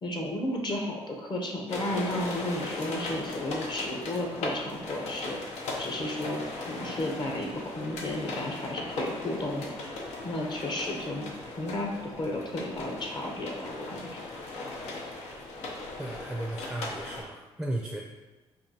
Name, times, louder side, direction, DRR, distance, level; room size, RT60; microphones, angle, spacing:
voice 1, 0.0-5.4 5.8-10.0 10.2-11.3 11.6-14.2, left 1 dB, 40° left, 1 dB, 0.8 m, -33 dB
sound 1, 1.7-17.2, left 2 dB, 90° left, 0.7 m, -38 dB
voice 2, 16.0-18.1, right 1 dB, 5° right, -1 dB, 0.5 m, -35 dB
5.1 x 2.6 x 2.8 m, 1.2 s
cardioid pair, 85°, 11 cm